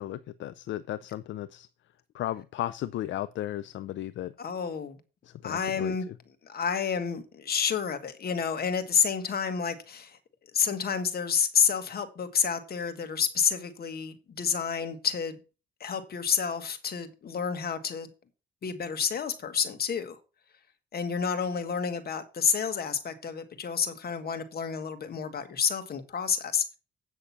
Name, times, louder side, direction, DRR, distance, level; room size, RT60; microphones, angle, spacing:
voice 1, 0.0-1.7 2.1-4.3 5.2-6.0, left 13 dB, 70° left, 0.5 m, -35 dB
voice 2, 4.4-5.0 5.4-6.1 6.4-10.2 10.5-15.4 15.8-18.1 18.6-20.2 20.9-26.6, left 7 dB, 50° left, 1.7 m, -29 dB
8.6 x 6.4 x 5.9 m
cardioid pair, 90°, 20 cm